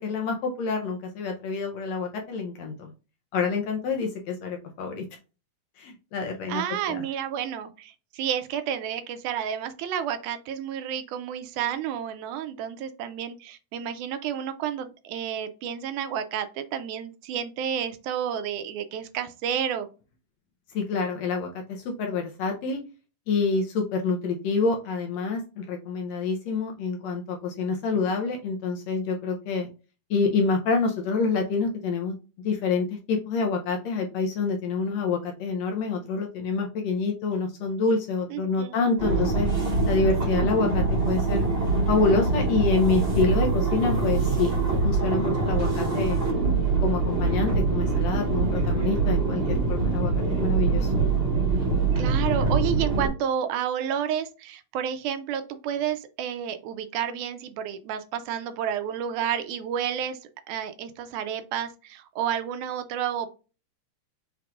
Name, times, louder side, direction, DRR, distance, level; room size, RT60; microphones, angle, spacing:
voice 1, 0.0-2.9 3.3-5.0 5.8-7.0 20.7-22.8 23.3-29.7 30.1-32.1 32.4-39.5 39.8-41.5 41.9-46.3 46.8-50.1 50.4-50.9, left 4 dB, 75° left, 2 dB, 1.7 m, -27 dB
voice 2, 6.5-19.9 38.3-38.9 52.0-60.2 60.5-63.3, right 9 dB, 80° right, 10 dB, 2.0 m, -30 dB
sound 1, 39.0-53.1, right 4 dB, 30° right, 1.0 m, -24 dB
5.9 x 3.4 x 2.4 m, 0.32 s
omnidirectional pair, 3.6 m